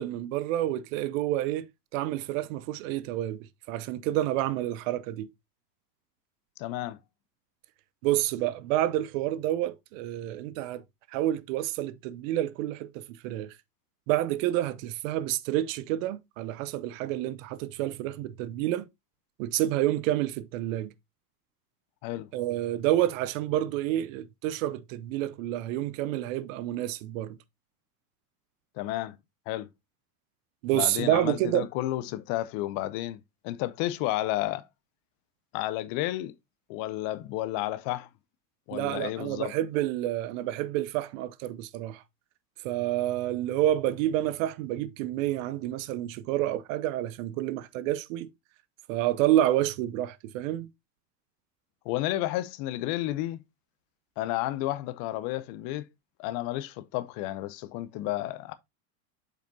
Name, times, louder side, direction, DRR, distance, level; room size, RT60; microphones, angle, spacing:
voice 1, 0.0-1.7 1.9-5.3 8.0-10.8 11.1-13.5 14.1-18.9 19.4-20.9 22.3-27.4 30.6-31.7 38.7-42.0 42.6-48.3 48.9-50.7, right 13 dB, 55° right, 0.8 m, -29 dB
voice 2, 6.6-7.0 22.0-22.3 28.8-29.2 29.5-29.7 30.7-33.2 33.4-34.6 35.5-36.3 36.7-38.1 38.7-39.5 51.8-53.4 54.2-55.9 56.2-58.5, left 15 dB, 45° left, 0.7 m, -31 dB
7.7 x 5.1 x 2.7 m
hypercardioid pair, 95°, 46 cm